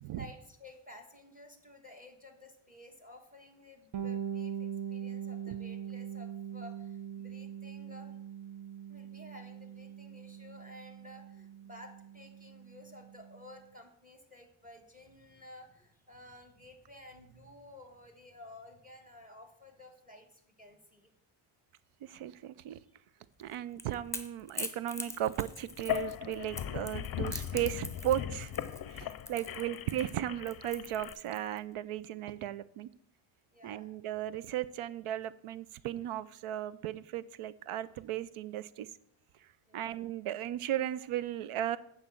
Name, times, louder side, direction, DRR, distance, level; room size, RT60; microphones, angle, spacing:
voice 1, 0.1-8.2 8.9-21.1 29.3-29.7 33.5-33.9 39.6-39.9, left 1 dB, 15° right, 5 dB, 1.3 m, -53 dB
Bass guitar, 3.9-13.5, right 9 dB, 65° right, 1.0 m, -42 dB
voice 2, 22.0-22.8 23.4-28.5 28.9-32.9 33.6-38.9 39.4-39.5 39.7-41.8, right 12 dB, 85° right, 17 dB, 0.6 m, -36 dB
Crackle / Crack, 23.4-31.6, left 2 dB, 5° left, 1.0 m, -43 dB
sound 1, 25.7-31.1, left 10 dB, 50° left, 0.5 m, -38 dB
8.9 x 4.2 x 7.3 m, 0.72 s
cardioid pair, 90°, 50 cm